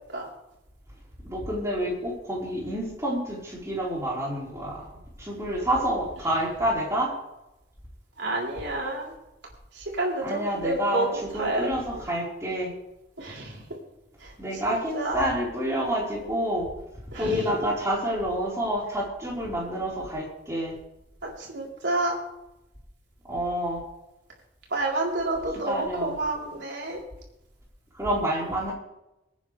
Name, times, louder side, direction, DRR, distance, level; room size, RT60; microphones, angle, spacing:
voice 1, 1.2-4.9 5.2-7.1 10.2-11.1 11.3-12.7 14.4-16.7 17.1-20.8 23.2-23.8 25.7-26.1 27.9-28.7, equal, 15° right, -5 dB, 4.5 m, -28 dB
voice 2, 8.2-9.1 9.7-11.7 13.2-13.6 14.2-14.3 14.6-15.2 17.1-17.5 21.2-22.2 24.7-27.0, right 2 dB, 85° right, -2 dB, 3.9 m, -29 dB
23.5 x 9.4 x 3.4 m, 0.91 s
head